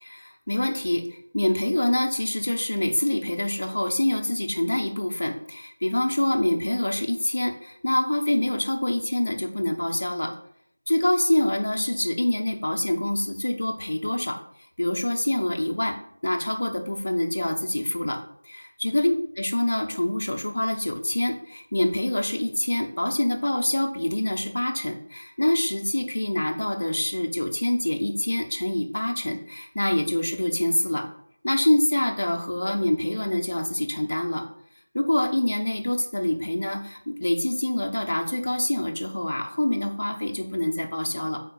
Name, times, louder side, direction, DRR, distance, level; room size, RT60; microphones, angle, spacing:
voice 1, 0.0-1.0 1.3-10.3 10.9-14.4 14.8-16.0 16.2-18.2 18.5-31.0 31.4-34.4 34.9-41.4, left 1 dB, 40° left, 3 dB, 0.7 m, -25 dB
4.3 x 4.2 x 5.3 m, 0.67 s
figure-of-eight pair, 175°, 0 cm